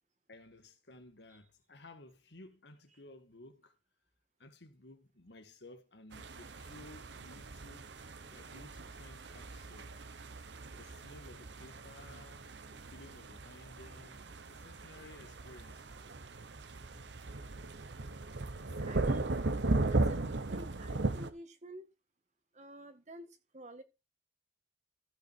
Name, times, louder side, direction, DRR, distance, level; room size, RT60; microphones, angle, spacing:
voice 1, 0.3-3.7 4.4-8.0 8.3-9.9 10.3-12.4 12.7-14.2 14.5-15.9 16.9-17.0, left 2 dB, 70° left, 1.7 m, -56 dB
sound 1, 6.1-21.3, right 2 dB, 80° right, 1.0 m, -37 dB
voice 2, 18.8-19.4 19.9-21.9 22.5-23.8, right 1 dB, 40° right, 1.9 m, -51 dB
15.5 x 5.7 x 4.5 m
head